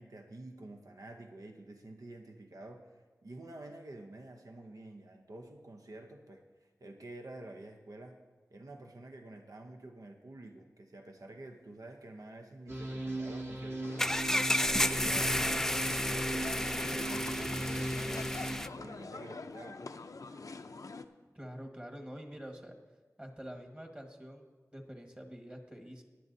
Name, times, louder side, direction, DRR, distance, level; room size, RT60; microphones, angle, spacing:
voice 1, 0.0-8.2 8.5-13.9 14.3-18.4 18.8-19.8, right 2 dB, 75° right, 3 dB, 0.8 m, -49 dB
sound 1, 12.7-18.6, right 1 dB, 40° right, 1.4 m, -38 dB
sound 2, 13.8-21.0, left 3 dB, 70° left, 0.5 m, -46 dB
sound 3, 14.0-18.7, left 1 dB, 10° left, 0.3 m, -32 dB
voice 2, 21.3-22.7 23.2-26.0, equal, 20° right, 3 dB, 1.6 m, -46 dB
18.0 x 10.0 x 2.7 m, 1.3 s
wide cardioid pair, 55°, 6 cm